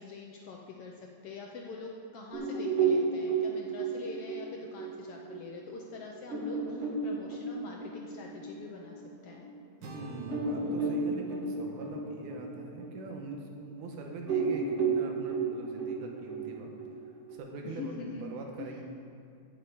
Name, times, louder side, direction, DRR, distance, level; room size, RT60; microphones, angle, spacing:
voice 1, 0.0-9.5 17.6-18.2 18.6-18.8, left 4 dB, 70° left, 0 dB, 1.4 m, -44 dB
sound 1, 2.3-9.4 9.8-9.9 10.3-13.9 14.3-17.4, right 4 dB, 35° right, 1.3 m, -32 dB
sound 2, 9.8-13.8, right 1 dB, 60° right, 1.2 m, -50 dB
voice 2, 9.9-16.7 17.3-18.8, right 3 dB, 85° right, 1 dB, 2.7 m, -42 dB
7.8 x 7.0 x 8.4 m, 2.4 s
omnidirectional pair, 3.4 m